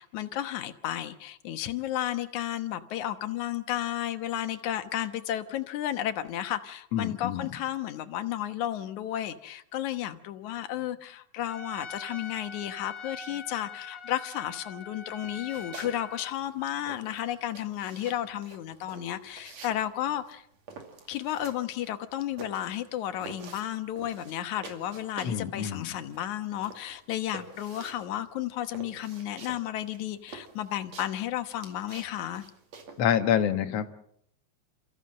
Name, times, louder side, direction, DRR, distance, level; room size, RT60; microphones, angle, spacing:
voice 1, 0.0-20.4 21.1-32.4, left 12 dB, 80° left, 10 dB, 2.5 m, -33 dB
voice 2, 6.9-7.5 25.2-26.0 33.0-33.9, left 9 dB, 65° left, 9 dB, 2.3 m, -27 dB
Trumpet, 11.5-16.4, left 4 dB, 35° left, 1.0 m, -43 dB
sound 1, 15.2-16.0 16.3-25.5 25.8-33.1, right 4 dB, 65° right, 3.7 m, -47 dB
29.0 x 15.0 x 7.6 m, 0.71 s
omnidirectional pair, 3.3 m